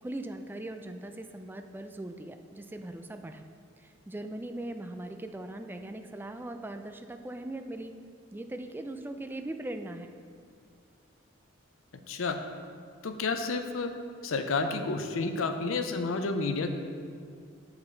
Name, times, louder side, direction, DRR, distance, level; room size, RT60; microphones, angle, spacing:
voice 1, 0.0-3.4 3.8-7.9 8.3-10.1, right 1 dB, 10° right, 6 dB, 0.3 m, -40 dB
voice 2, 12.1-12.4 13.0-13.9 14.2-16.7, left 3 dB, 90° left, 7 dB, 0.6 m, -30 dB
7.6 x 5.9 x 3.9 m, 2.2 s
head